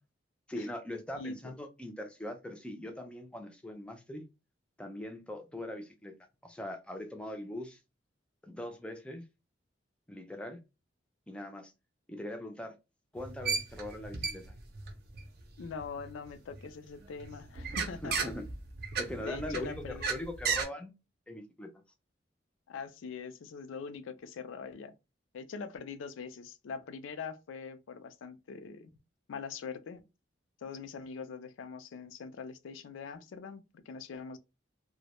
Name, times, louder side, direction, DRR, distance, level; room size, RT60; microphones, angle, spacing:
voice 1, 0.5-4.2 4.8-6.1 6.4-7.8 8.4-9.2 10.1-10.6 11.3-11.7 12.1-12.8 13.1-14.6 18.0-18.4 19.0-20.9 21.3-21.7, left 1 dB, 5° left, 0.3 m, -41 dB
sound 1, 13.2-16.6 17.0-20.6, right 5 dB, 55° right, 0.5 m, -35 dB
voice 2, 15.6-18.3 19.2-20.2 22.7-24.9 25.3-28.9 29.3-30.0 30.6-34.4, left 5 dB, 80° left, 0.4 m, -43 dB
2.1 x 2.0 x 2.9 m
head